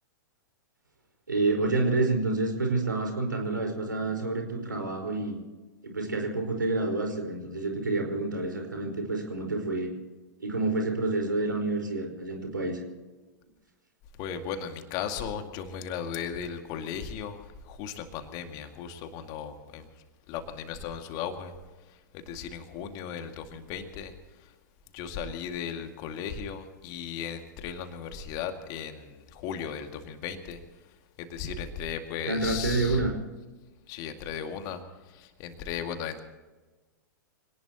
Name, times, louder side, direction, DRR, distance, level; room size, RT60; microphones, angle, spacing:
voice 1, 1.3-5.4 5.8-9.9 10.4-12.8 32.2-33.1, right 2 dB, 75° right, 3 dB, 4.8 m, -28 dB
voice 2, 14.2-17.4 17.7-19.9 20.3-21.5 22.1-24.1 24.9-30.6 31.2-33.0 33.9-34.8 35.1-36.2, left 7 dB, 35° left, 6 dB, 2.2 m, -36 dB
26.0 x 19.0 x 3.0 m, 1.2 s
figure-of-eight pair, 100°, 11 cm